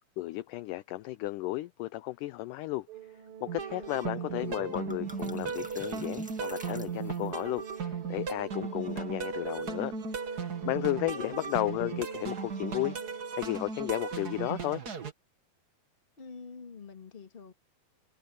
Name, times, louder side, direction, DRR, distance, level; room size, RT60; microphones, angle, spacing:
voice 1, 0.2-2.9 3.4-9.9 10.6-14.8, left 17 dB, 80° left, 1.9 m, -34 dB
Organ, 2.9-13.7, right 7 dB, 60° right, 1.6 m, -47 dB
sound 1, 3.5-15.1, right 5 dB, 40° right, 1.4 m, -36 dB
voice 2, 3.7-4.5 10.8-11.4 16.2-17.5, left 5 dB, 20° left, 1.4 m, -47 dB
sound 2, 4.0-4.1 4.4-7.4, right 1 dB, 10° right, 0.5 m, -48 dB
omnidirectional pair, 4.2 m